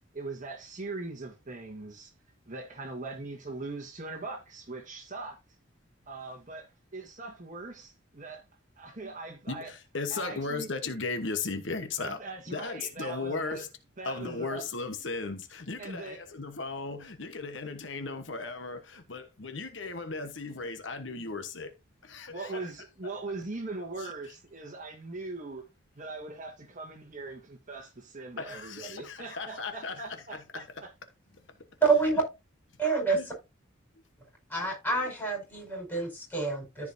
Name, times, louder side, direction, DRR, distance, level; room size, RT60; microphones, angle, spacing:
voice 1, 0.1-2.1 2.5-5.4 6.1-8.4 8.8-9.7 10.1-10.7 12.0-13.7 14.0-14.7 15.8-16.2 22.3-25.7 25.9-30.9, right 3 dB, 40° right, 1.6 m, -41 dB
voice 2, 9.5-12.2 12.5-13.7 14.0-21.7 22.0-22.6 28.4-30.0 30.5-30.6 33.1-33.2, left 3 dB, 65° left, 1.2 m, -36 dB
voice 3, 31.8-32.2 32.8-33.3 34.5-36.9, right 4 dB, 10° left, 5.1 m, -27 dB
14.0 x 5.0 x 2.7 m
head